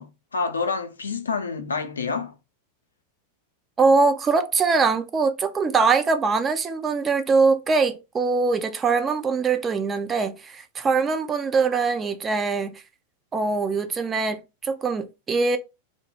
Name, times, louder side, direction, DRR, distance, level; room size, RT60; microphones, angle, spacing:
voice 1, 0.0-2.4, left 4 dB, 75° left, 0.4 m, -28 dB
voice 2, 3.8-12.8 13.3-15.6, right 4 dB, 20° right, 0.3 m, -22 dB
2.0 x 2.0 x 3.2 m
figure-of-eight pair, 90°, 0 cm